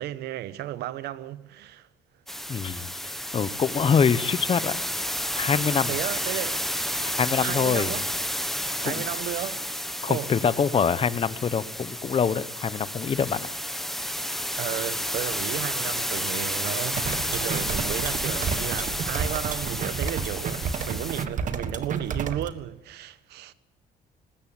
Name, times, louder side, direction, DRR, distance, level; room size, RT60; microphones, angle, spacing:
voice 1, 0.0-1.9 2.4-2.6 5.9-6.7 7.4-8.1 8.8-9.7 10.1-10.3 14.6-23.5, right 13 dB, 75° right, 1.0 m, -34 dB
sound 1, 2.3-21.3, equal, ahead, 1.2 m, -31 dB
voice 2, 2.5-4.8 5.3-6.0 7.0-7.9 8.8-9.0 10.0-13.5, left 6 dB, 35° left, 0.9 m, -25 dB
sound 2, 17.0-22.5, right 6 dB, 50° right, 1.6 m, -31 dB
20.0 x 15.5 x 8.8 m
cardioid pair, 110°, 17 cm